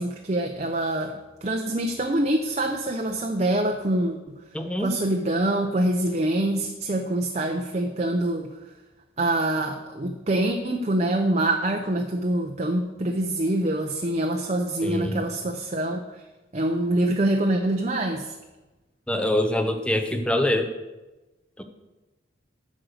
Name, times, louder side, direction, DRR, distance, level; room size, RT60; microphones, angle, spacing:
voice 1, 0.0-4.2 4.8-8.5 9.2-16.0 16.5-18.3, right 1 dB, 35° right, 3 dB, 0.6 m, -25 dB
voice 2, 4.5-4.9 14.8-15.2 19.1-20.7, left 1 dB, 5° left, 6 dB, 0.7 m, -24 dB
8.8 x 6.4 x 6.5 m, 1.1 s
head